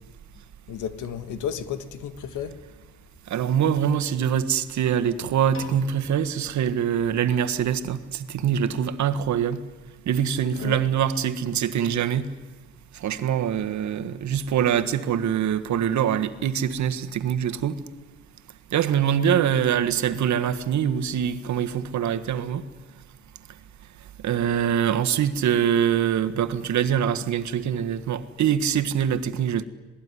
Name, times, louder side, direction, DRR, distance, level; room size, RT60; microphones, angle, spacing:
voice 1, 0.7-2.6 10.6-10.8, left 8 dB, 85° left, 1.9 m, -32 dB
voice 2, 3.3-9.6 10.1-12.3 13.0-17.8 18.7-22.6 24.2-29.6, right 9 dB, 70° right, 1.6 m, -24 dB
Piano, 5.5-7.8, left 4 dB, 45° left, 6.0 m, -47 dB
27.0 x 19.5 x 9.9 m
cardioid pair, 90°, 30 cm